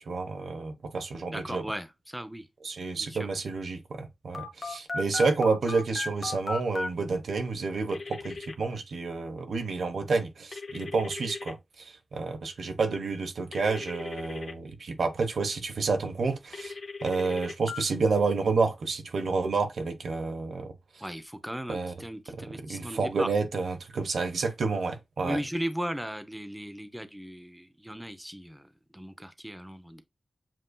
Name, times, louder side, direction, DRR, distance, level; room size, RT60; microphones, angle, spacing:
voice 1, 0.1-1.6 2.6-16.7 17.0-20.7 21.7-21.9 22.7-25.4, right 4 dB, 85° right, 1.0 m, -29 dB
voice 2, 1.3-2.5 3.0-3.3 21.0-23.3 25.2-30.0, equal, 5° right, 0.6 m, -37 dB
Telephone, 4.3-6.9 7.9-8.5 10.5-11.5 13.5-14.5 16.5-17.8, left 3 dB, 55° left, 0.9 m, -37 dB
7.5 x 2.6 x 2.2 m
wide cardioid pair, 145°, 0 cm